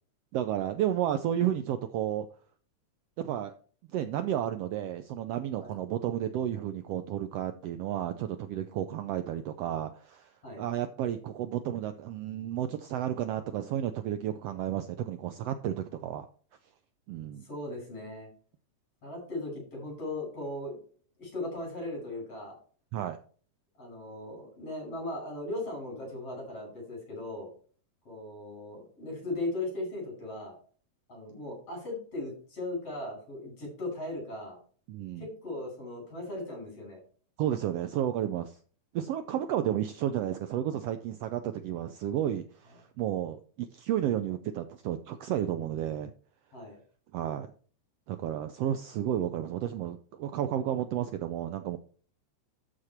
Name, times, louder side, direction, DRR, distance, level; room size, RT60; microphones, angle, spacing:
voice 1, 0.3-2.3 3.2-3.5 3.9-10.3 10.6-16.3 17.1-17.5 22.9-23.2 34.9-35.3 37.4-38.6 38.9-46.1 47.1-47.5 48.1-51.8, right 11 dB, 85° right, 9 dB, 1.4 m, -32 dB
voice 2, 17.4-18.3 19.0-20.8 21.2-22.5 23.7-27.5 28.0-30.6 31.1-34.6 35.2-37.0 46.5-46.8, left 2 dB, 50° left, 0 dB, 6.7 m, -38 dB
13.0 x 4.9 x 4.4 m, 0.43 s
omnidirectional pair, 3.5 m